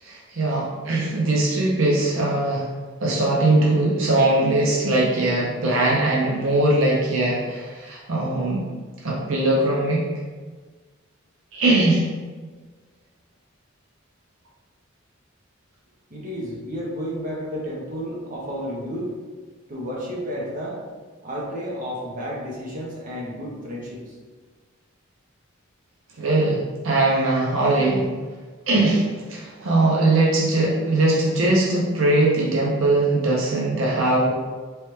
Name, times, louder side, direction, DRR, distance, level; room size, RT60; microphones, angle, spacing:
voice 1, 0.0-2.7 3.0-8.7 9.0-10.1 11.5-12.1 26.2-28.1 28.7-34.3, right 2 dB, 70° right, -4 dB, 0.6 m, -21 dB
voice 2, 16.1-19.1 19.7-20.8 21.2-24.2, equal, 40° right, -4 dB, 0.9 m, -31 dB
3.2 x 3.2 x 3.1 m, 1.4 s
head